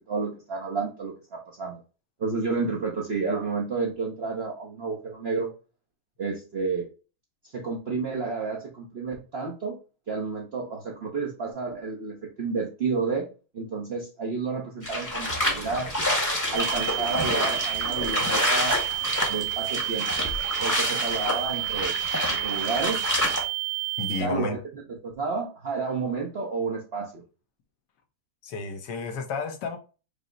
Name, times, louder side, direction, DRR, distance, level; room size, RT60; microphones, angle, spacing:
voice 1, 0.1-1.8 2.2-5.5 6.2-6.9 7.5-9.8 10.1-13.3 13.5-15.9 16.5-18.8 19.3-20.1 20.6-22.0 22.3-23.0 24.2-24.6 25.0-27.2, right 4 dB, 55° right, 0.7 m, -30 dB
sound 1, 14.8-23.4, left 1 dB, 15° left, 1.0 m, -28 dB
sound 2, 16.5-24.2, right 22 dB, 70° right, 1.1 m, -30 dB
voice 2, 24.0-24.5 28.4-29.8, left 4 dB, 70° left, 1.4 m, -31 dB
5.3 x 2.0 x 3.7 m
omnidirectional pair, 2.0 m